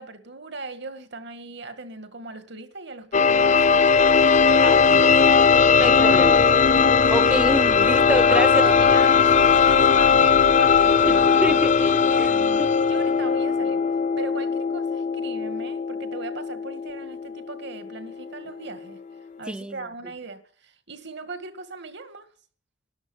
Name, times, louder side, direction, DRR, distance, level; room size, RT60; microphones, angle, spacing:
voice 1, 0.0-6.0 6.7-7.1 8.1-13.8 14.2-19.0 19.4-22.3, right 3 dB, 60° right, 2.0 m, -38 dB
sound 1, 3.1-18.7, left 5 dB, 40° left, 0.6 m, -19 dB
voice 2, 4.6-5.0 5.8-6.4 7.1-8.5 11.0-11.9 12.2-12.3 12.6-12.7 19.5-19.9, right 1 dB, 5° right, 0.6 m, -27 dB
12.5 x 11.5 x 8.0 m
head